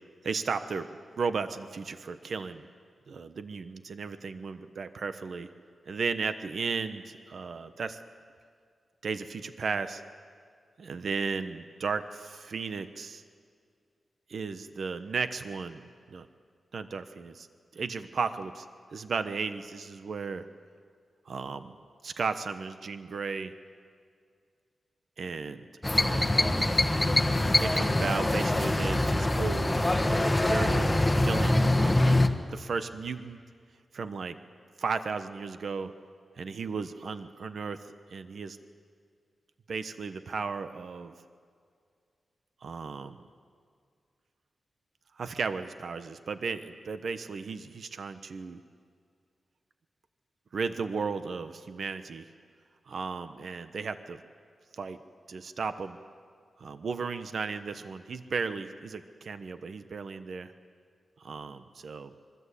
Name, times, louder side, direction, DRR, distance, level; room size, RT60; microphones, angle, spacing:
voice 1, 0.2-2.7 3.1-5.5 5.9-8.0 9.0-10.0 10.8-13.2 14.3-15.8 16.1-16.3 16.7-17.5 17.7-18.6 18.9-20.4 21.3-21.7 22.0-23.5 25.2-25.6 25.9-26.4 27.6-32.2 32.5-33.4 33.9-34.4 34.8-35.9 36.4-37.8 38.1-38.6 39.7-41.1 42.6-43.2 45.2-48.6 50.5-52.3 52.9-54.2 54.8-55.0 55.3-56.0 56.6-60.5 61.2-62.1, right 5 dB, 65° right, 10 dB, 1.2 m, -35 dB
sound 1, 25.8-32.3, left 1 dB, 15° left, 1.4 m, -24 dB
25.5 x 22.5 x 8.5 m, 2.2 s
wide cardioid pair, 125°, 0 cm